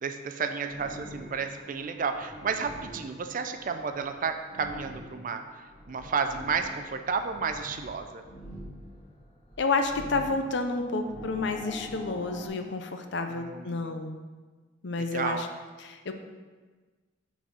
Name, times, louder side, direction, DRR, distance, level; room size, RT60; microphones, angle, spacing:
voice 1, 0.0-5.4 5.9-8.2 13.3-14.0 15.1-15.4, right 5 dB, 45° right, 7 dB, 0.4 m, -32 dB
sound 1, 0.6-12.5, left 1 dB, 40° left, 1.7 m, -45 dB
voice 2, 9.6-14.2 14.8-15.5 15.8-16.1, left 3 dB, 60° left, 6 dB, 0.6 m, -30 dB
5.9 x 4.1 x 5.4 m, 1.4 s
head